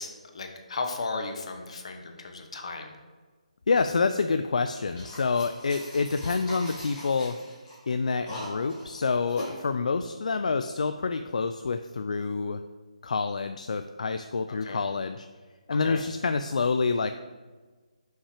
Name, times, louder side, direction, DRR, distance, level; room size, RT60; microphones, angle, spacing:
voice 1, 0.0-2.9 14.5-14.8 15.8-16.0, left 3 dB, 55° left, 5 dB, 1.1 m, -35 dB
voice 2, 3.7-7.4 7.9-12.6 13.0-15.3 15.7-17.1, left 4 dB, 70° left, 9 dB, 0.4 m, -27 dB
sound 1, 4.8-9.6, left 1 dB, 15° left, 2.0 m, -42 dB
5.8 x 5.6 x 4.9 m, 1.4 s
hypercardioid pair, 170°, 4 cm